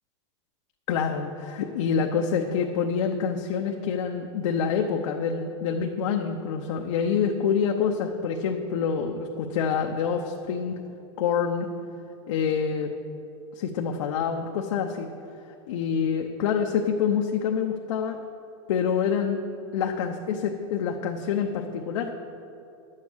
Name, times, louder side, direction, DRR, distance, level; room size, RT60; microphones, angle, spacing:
voice 1, 0.9-10.8 11.2-11.7 12.3-12.9 13.6-15.1 15.7-18.2 18.7-19.4 19.7-22.1, left 6 dB, 85° left, 2 dB, 0.8 m, -26 dB
10.5 x 7.5 x 6.3 m, 2.6 s
supercardioid pair, 160°, 16 cm